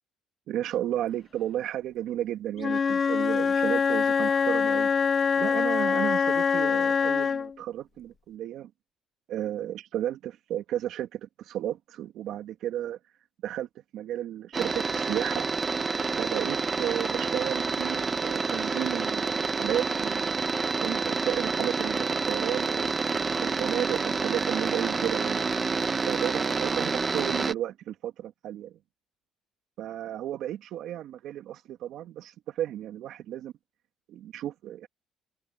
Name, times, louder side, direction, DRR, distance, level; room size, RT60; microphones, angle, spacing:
voice 1, 0.5-4.9 5.4-8.7 9.3-13.0 13.4-13.7 13.9-15.5 16.1-20.4 20.8-22.9 23.4-25.5 26.0-28.8 29.8-33.5 34.1-34.9, right 11 dB, 70° right, 2.4 m, -33 dB
Wind instrument woodwind instrument, 2.6-7.5, left 6 dB, 35° left, 0.7 m, -24 dB
sound 1, 14.5-27.5, right 4 dB, 25° right, 1.2 m, -28 dB
cardioid pair, 110°, 0 cm